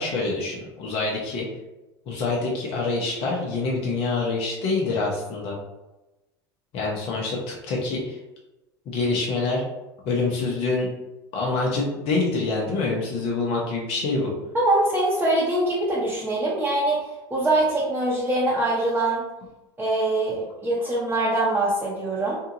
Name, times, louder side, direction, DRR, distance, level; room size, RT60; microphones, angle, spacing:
voice 1, 0.0-1.5 2.1-5.6 6.7-8.2 8.9-9.6 10.0-10.9 11.3-14.3, left 3 dB, 50° left, -3 dB, 0.8 m, -26 dB
voice 2, 14.5-19.2 19.8-22.4, right 2 dB, 15° right, -7 dB, 0.9 m, -23 dB
2.7 x 2.4 x 2.8 m, 1.0 s
hypercardioid pair, 80°, 13 cm